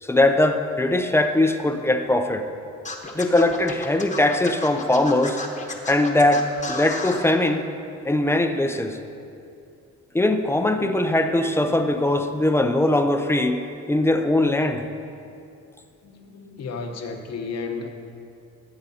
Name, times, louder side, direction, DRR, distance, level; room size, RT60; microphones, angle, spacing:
voice 1, 0.0-2.5 3.1-5.4 5.9-7.7 8.0-9.0 10.1-13.6 13.9-14.8, left 1 dB, 10° left, 7 dB, 0.5 m, -21 dB
Scratching (performance technique), 2.8-7.2, left 3 dB, 25° left, 1.1 m, -33 dB
voice 2, 16.0-17.9, left 4 dB, 60° left, 4 dB, 1.1 m, -33 dB
14.5 x 7.7 x 2.8 m, 2.6 s
cardioid pair, 90°, 30 cm